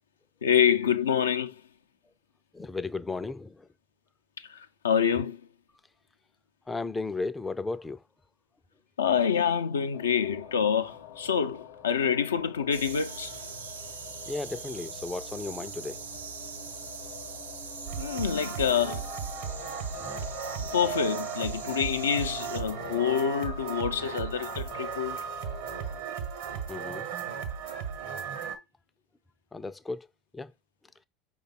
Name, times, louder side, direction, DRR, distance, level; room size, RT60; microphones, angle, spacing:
voice 1, 0.4-1.6 4.4-5.4 9.0-13.3 18.0-19.0 20.6-25.2, left 7 dB, 80° left, 0.4 m, -27 dB
voice 2, 2.5-3.7 6.7-8.0 14.3-16.0 26.7-27.1 29.5-30.1 30.3-30.5, left 3 dB, 15° left, 0.4 m, -34 dB
sound 1, 9.9-26.0, left 9 dB, 65° left, 0.8 m, -47 dB
sound 2, 12.7-22.6, right 5 dB, 85° right, 0.5 m, -42 dB
sound 3, 17.9-28.6, right 7 dB, 70° right, 1.0 m, -36 dB
5.1 x 2.3 x 4.0 m
hypercardioid pair, 75°, 0 cm